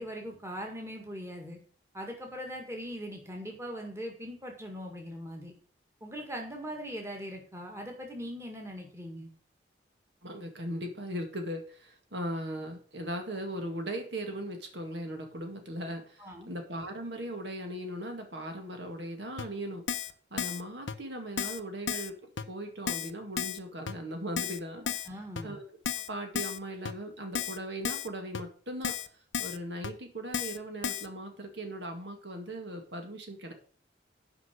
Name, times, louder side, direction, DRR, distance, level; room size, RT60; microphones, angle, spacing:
voice 1, 0.0-1.6 1.9-5.5 6.0-9.3 16.2-16.5 24.8-25.5, equal, 15° right, 2 dB, 1.9 m, -40 dB
voice 2, 10.2-19.8 20.3-22.2 22.5-25.1 25.4-25.6 26.1-29.0 29.4-33.5, right 1 dB, 70° right, 4 dB, 2.0 m, -38 dB
Keyboard (musical), 19.4-19.5 19.9-20.1 20.4-20.6 20.9-21.0 21.4-21.6 21.9-22.1 22.4-22.5 22.9-23.1 23.4-23.6 23.9-24.0 24.4-24.6 24.9-25.1 25.4-25.5 25.9-26.1 26.4-26.6 26.9-27.0 27.4-27.6 27.9-28.1 28.3-28.4 28.8-29.1 29.3-29.6 29.8-29.9 30.3-30.6 30.8-31.1, left 7 dB, 85° left, 0.8 m, -33 dB
9.9 x 5.5 x 6.3 m, 0.43 s
head